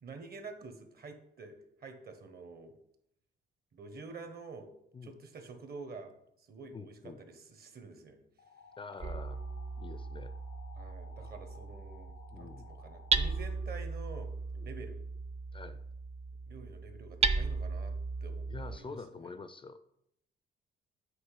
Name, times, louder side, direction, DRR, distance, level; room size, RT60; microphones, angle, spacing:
voice 1, 0.0-2.7 3.7-4.7 5.0-6.1 6.4-8.2 10.7-14.3 14.6-15.0 16.5-17.9 18.2-19.4, right 4 dB, 50° right, 7 dB, 1.1 m, -48 dB
voice 2, 6.7-7.2 8.8-9.4 9.8-10.3 12.3-12.7 14.6-14.7 15.5-15.8 18.5-19.9, left 4 dB, 25° left, 11 dB, 0.4 m, -46 dB
sound 1, 8.4-13.4, left 5 dB, 80° left, 0.7 m, -56 dB
Hammer, 9.0-18.8, right 4 dB, 30° right, 0.5 m, -36 dB
8.0 x 3.0 x 4.8 m, 0.76 s
cardioid pair, 90°, 20 cm